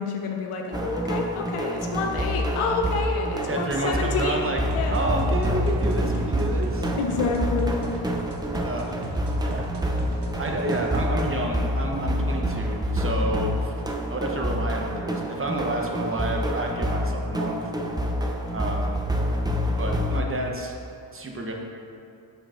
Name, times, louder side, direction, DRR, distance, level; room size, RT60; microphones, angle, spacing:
voice 1, 0.0-4.4 4.7-5.0 6.9-7.7, left 4 dB, 80° left, 2 dB, 0.7 m, -28 dB
sound 1, 0.7-20.2, equal, 10° right, 0.3 m, -27 dB
voice 2, 3.5-4.6 4.9-6.9 8.6-9.0 9.4-9.7 10.4-13.7 14.1-17.6 18.5-19.0 19.8-20.7 21.1-21.5, right 1 dB, 25° right, 1 dB, 0.7 m, -29 dB
sound 2, 4.6-11.2, right 1 dB, 55° right, 1.1 m, -36 dB
6.4 x 6.2 x 2.4 m, 2.6 s
cardioid pair, 70°, 50 cm